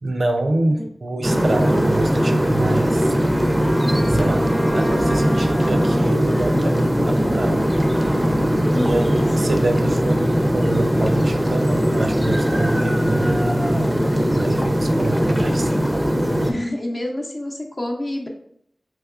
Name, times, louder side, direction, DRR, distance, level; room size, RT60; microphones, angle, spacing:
voice 1, 0.0-3.1 4.1-7.7 8.7-13.9 14.3-15.7, right 2 dB, 75° right, 6 dB, 0.3 m, -26 dB
sound 1, 1.2-16.5, equal, 15° right, 0.4 m, -19 dB
Trumpet, 3.6-6.1, equal, 80° left, 1.0 m, -33 dB
voice 2, 8.7-9.8 16.5-18.3, left 1 dB, 45° left, 2 dB, 0.6 m, -28 dB
3.5 x 2.9 x 2.4 m, 0.69 s
cardioid pair, 45°, 0 cm